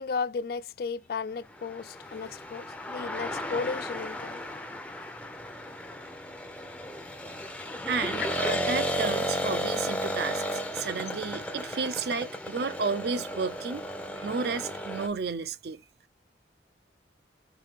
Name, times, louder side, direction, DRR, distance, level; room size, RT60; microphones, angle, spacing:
voice 1, 0.0-4.4, left 5 dB, 55° left, 0.3 m, -34 dB
sound 1, 1.6-15.1, equal, 5° left, 0.5 m, -34 dB
voice 2, 7.9-10.4 10.7-13.8 14.2-15.8, right 5 dB, 65° right, 0.5 m, -32 dB
5.1 x 2.7 x 3.6 m
head